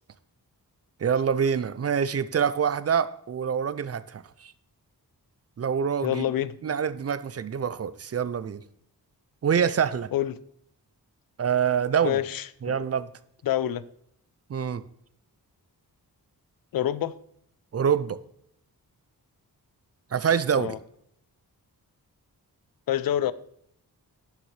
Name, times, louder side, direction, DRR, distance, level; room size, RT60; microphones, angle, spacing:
voice 1, 1.0-4.5 5.6-6.2 6.6-8.6 9.4-10.1 11.4-12.2 12.6-13.1 14.5-14.8 17.7-18.2 20.1-20.8, right 7 dB, 40° right, 0.4 m, -26 dB
voice 2, 6.0-6.6 10.1-10.3 12.0-12.8 13.4-13.8 16.7-17.1 20.5-20.8 22.9-23.3, left 11 dB, 65° left, 0.5 m, -27 dB
11.0 x 6.5 x 3.2 m
wide cardioid pair, 140°, 38 cm